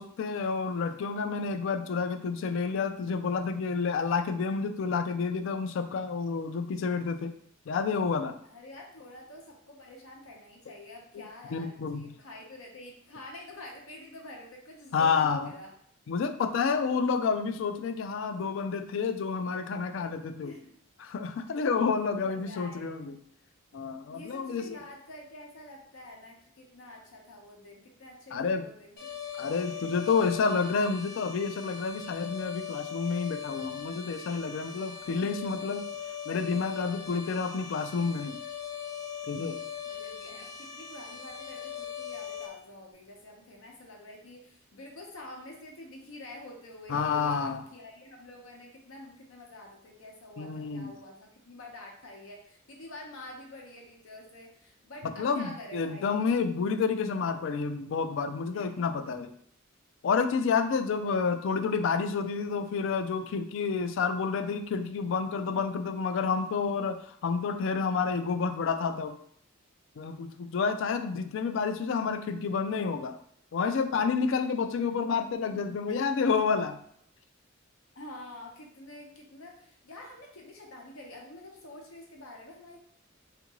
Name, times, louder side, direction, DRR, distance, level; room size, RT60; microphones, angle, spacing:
voice 1, 0.0-7.3 7.7-8.4 11.5-12.1 14.9-15.5 16.1-20.5 21.0-23.2 23.7-24.8 28.3-28.7 29.4-35.9 36.3-38.4 39.3-39.6 46.9-47.6 50.4-50.9 55.2-59.3 60.0-69.2 70.0-73.2 73.5-76.8, left 5 dB, 65° left, 8 dB, 0.3 m, -29 dB
voice 2, 8.4-15.7 20.4-20.8 22.0-23.0 24.1-29.0 29.5-29.9 34.5-36.0 39.9-56.2 58.5-58.8 75.4-76.0 77.9-82.9, left 1 dB, 85° left, 0 dB, 0.8 m, -48 dB
sound 1, 29.0-42.5, left 8 dB, 50° left, 0.8 m, -40 dB
3.5 x 2.5 x 3.0 m, 0.66 s
head